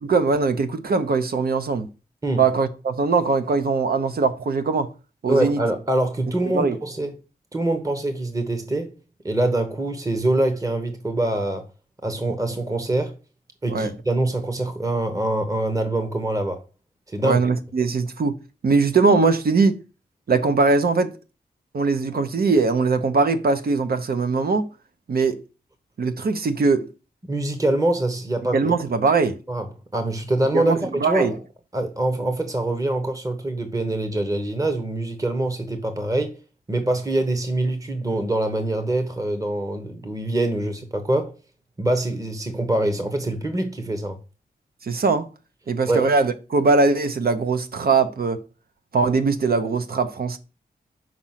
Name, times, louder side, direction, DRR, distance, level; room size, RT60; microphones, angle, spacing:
voice 1, 0.0-1.9 2.4-4.9 5.2-5.6 6.5-6.8 13.7-13.9 17.2-18.4 18.6-19.8 20.3-21.1 21.7-24.7 25.1-25.4 26.0-26.9 28.5-29.4 30.5-31.3 44.8-45.3 45.7-48.4 48.9-50.4, right 4 dB, 65° right, 0.8 m, -21 dB
voice 2, 5.3-7.1 7.5-8.9 9.2-11.6 12.0-13.1 13.6-16.6 17.1-17.4 27.2-28.7 29.5-31.4 31.7-36.3 36.7-41.3 41.8-44.2 45.9-46.1, right 1 dB, 20° right, 1.0 m, -24 dB
6.0 x 5.1 x 5.8 m
wide cardioid pair, 150°, 17 cm